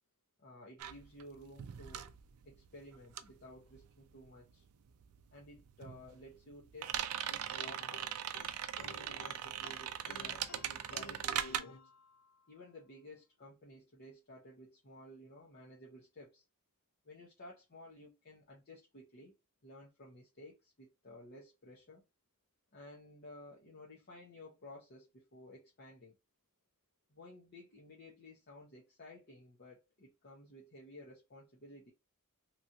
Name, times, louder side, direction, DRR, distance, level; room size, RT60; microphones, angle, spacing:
voice 1, 0.4-2.1 2.4-4.6 5.3-6.9 7.2-8.2 8.8-11.8 12.5-16.4 17.0-19.3 19.6-22.0 22.7-26.1 27.1-31.9, left 1 dB, 50° left, 0.9 m, -54 dB
sound 1, 0.8-4.6 4.9-11.6, right 10 dB, 70° right, 0.4 m, -40 dB
sound 2, 7.5-12.6, left 4 dB, 70° left, 0.5 m, -54 dB
3.0 x 2.5 x 2.7 m
head